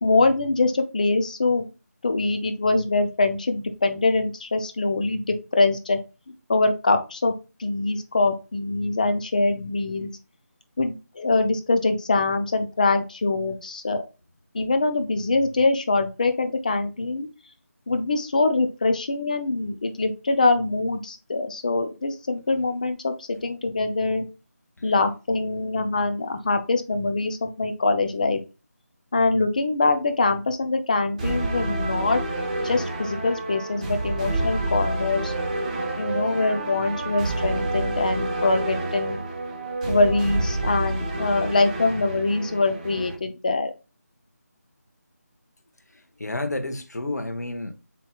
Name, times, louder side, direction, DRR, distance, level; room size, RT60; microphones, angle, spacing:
voice 1, 0.0-1.6 2.0-6.0 6.5-7.3 7.6-10.1 10.8-14.0 14.5-17.3 17.9-24.3 24.8-28.4 29.1-32.2 32.6-35.3 36.0-39.2 39.9-43.7, left 3 dB, 30° left, 0.5 m, -23 dB
sound 1, 31.2-43.1, right 2 dB, 25° right, 1.1 m, -28 dB
voice 2, 45.9-47.7, left 2 dB, 75° left, 1.1 m, -31 dB
6.9 x 3.1 x 2.2 m
figure-of-eight pair, 170°, 9 cm